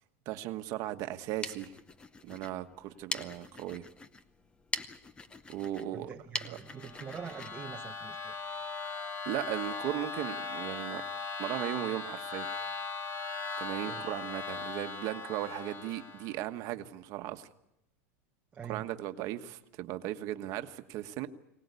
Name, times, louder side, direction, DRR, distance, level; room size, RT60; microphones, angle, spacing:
voice 1, 0.2-1.7 2.2-3.8 5.5-6.1 6.4-6.6 9.2-11.0 11.4-12.5 13.6-17.5 18.6-21.3, right 13 dB, 40° right, 8 dB, 1.3 m, -37 dB
sound 1, 1.1-8.6, left 3 dB, 10° left, 0.8 m, -43 dB
voice 2, 5.9-8.4 13.8-14.0 18.5-18.9, right 7 dB, 15° right, 3 dB, 0.9 m, -44 dB
sound 2, 6.7-16.4, left 4 dB, 30° left, 2.8 m, -39 dB
23.5 x 19.0 x 8.3 m, 0.82 s
supercardioid pair, 155°, 8 cm